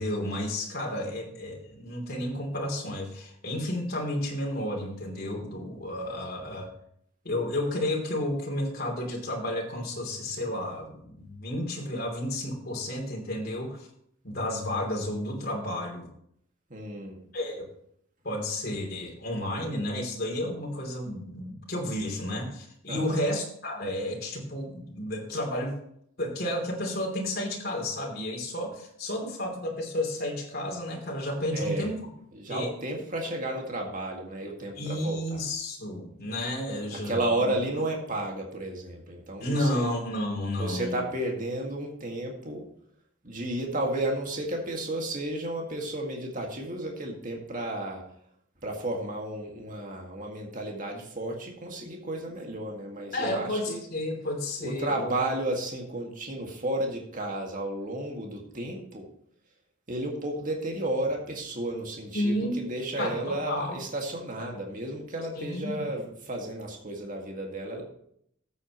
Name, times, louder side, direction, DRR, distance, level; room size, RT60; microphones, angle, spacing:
voice 1, 0.0-6.7 7.2-13.9 14.2-16.1 17.3-17.7 18.2-25.8 26.2-32.0 32.5-32.7 34.8-37.2 39.4-40.9 53.1-55.1 62.1-62.6 63.0-63.8 65.4-65.8, left 1 dB, 45° left, 0 dB, 3.0 m, -31 dB
voice 2, 16.7-17.2 22.9-23.2 31.5-31.9 32.3-35.4 37.0-39.9 40.6-42.7 43.2-48.0 48.6-53.8 54.6-59.1 59.9-67.8, right 1 dB, 40° right, 1 dB, 1.9 m, -32 dB
13.5 x 8.3 x 3.0 m, 0.68 s
head